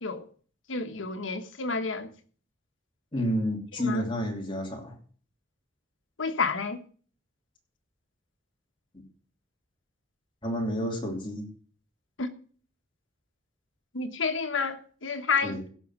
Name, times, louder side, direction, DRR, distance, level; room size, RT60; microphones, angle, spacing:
voice 1, 0.7-2.1 3.2-3.3 3.7-4.0 6.2-6.8 12.2-12.3 13.9-15.7, left 4 dB, 75° left, 1.3 m, -30 dB
voice 2, 3.1-4.9 10.4-11.5 15.4-15.6, equal, 25° left, 2.9 m, -30 dB
16.0 x 6.2 x 6.2 m
head